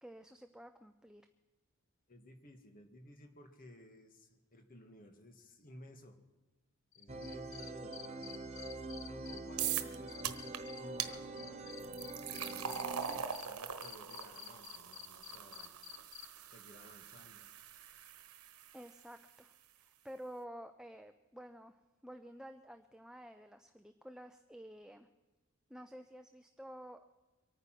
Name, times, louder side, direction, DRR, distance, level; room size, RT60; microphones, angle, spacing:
voice 1, 0.0-1.3 7.6-8.0 18.7-21.8 22.0-25.1 25.7-27.1, equal, 5° right, 7 dB, 0.5 m, -51 dB
voice 2, 2.1-6.2 7.0-8.4 9.1-15.7 16.5-17.5, left 1 dB, 40° left, 6 dB, 1.8 m, -56 dB
Cricket, 6.9-9.7 10.1-13.5 13.8-16.3, left 10 dB, 55° left, 0.7 m, -50 dB
sound 1, 7.1-13.2, right 2 dB, 30° right, 0.9 m, -45 dB
sound 2, 9.6-10.0 10.2-10.6 11.0-11.1 11.8-18.9, right 8 dB, 85° right, 1.1 m, -42 dB
24.0 x 9.4 x 5.9 m, 1.2 s
head